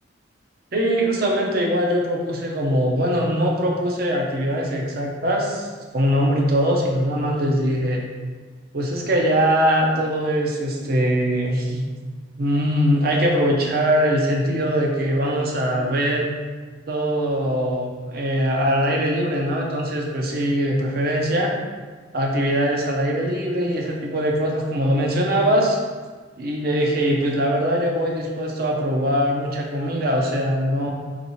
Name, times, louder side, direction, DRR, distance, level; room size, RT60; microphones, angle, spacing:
voice 1, 0.7-5.7 5.9-8.0 8.7-11.8 12.4-16.3 16.9-21.5 22.1-25.8 26.4-30.9, equal, 50° right, 0 dB, 0.6 m, -22 dB
4.1 x 3.1 x 3.0 m, 1.5 s
head